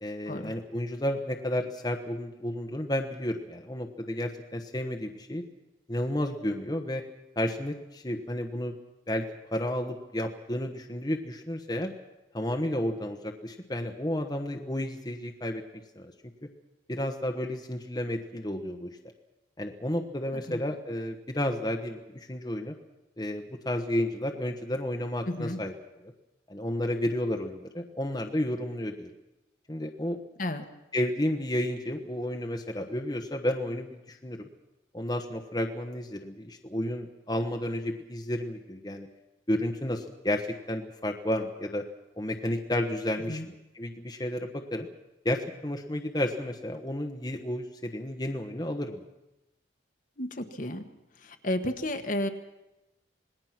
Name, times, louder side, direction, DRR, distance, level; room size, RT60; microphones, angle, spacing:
voice 1, 0.0-5.4 5.9-7.0 7.4-8.7 9.1-9.3 9.5-11.9 12.3-15.6 15.9-16.1 16.9-19.0 19.6-22.7 23.2-25.7 26.5-29.1 29.7-30.2 30.9-34.5 34.9-39.1 39.5-41.8 42.2-43.4 43.7-44.9 45.2-49.0, left 1 dB, 20° left, 3 dB, 1.2 m, -32 dB
voice 2, 20.3-20.6 25.3-25.6 30.4-30.7 43.3-43.5 50.2-50.9 51.2-52.3, left 1 dB, 45° left, 6 dB, 1.5 m, -32 dB
27.0 x 20.0 x 6.0 m, 0.95 s
head